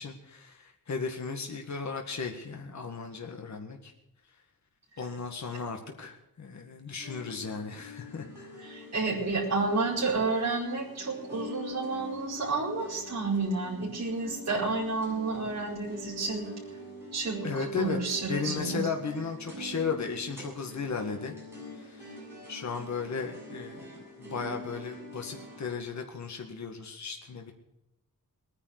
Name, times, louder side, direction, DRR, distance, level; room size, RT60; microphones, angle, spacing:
voice 1, 0.0-3.9 5.0-8.7 17.4-18.0 18.3-21.3 21.7-22.2 22.5-23.9 24.2-27.5, left 5 dB, 50° left, 3 dB, 1.8 m, -35 dB
sound 1, 7.0-25.7, left 1 dB, 5° right, 7.9 m, -44 dB
voice 2, 8.6-16.5 17.1-17.4 17.8-18.8, right 3 dB, 50° right, -5 dB, 4.7 m, -30 dB
20.0 x 9.9 x 6.6 m, 0.89 s
wide cardioid pair, 170°, 35 cm